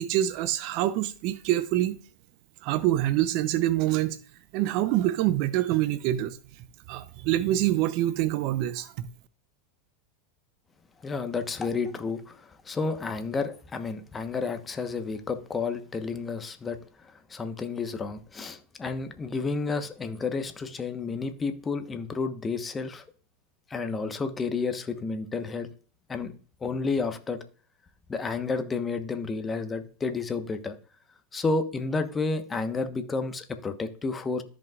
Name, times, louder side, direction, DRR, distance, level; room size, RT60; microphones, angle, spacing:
voice 1, 0.0-2.0 2.6-4.2 4.5-6.4 6.9-9.1, right 14 dB, 55° right, 0.6 m, -26 dB
voice 2, 11.0-23.0 23.7-25.7 26.1-26.3 26.6-27.4 28.1-30.7 31.3-34.4, left 4 dB, 20° left, 1.1 m, -31 dB
14.0 x 5.4 x 2.4 m
hypercardioid pair, 95°, 0 cm